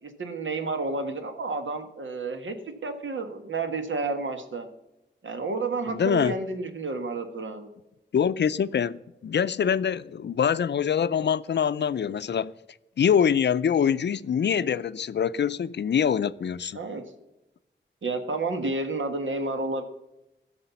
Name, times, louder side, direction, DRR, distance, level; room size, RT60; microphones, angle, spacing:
voice 1, 0.0-4.7 5.2-7.7 14.6-14.7 16.7-17.0 18.0-19.8, right 3 dB, 90° right, 1.5 m, -31 dB
voice 2, 5.9-6.3 8.1-12.5 13.0-16.8, left 8 dB, 65° left, 0.4 m, -24 dB
15.5 x 6.6 x 5.6 m
wide cardioid pair, 105°, 19 cm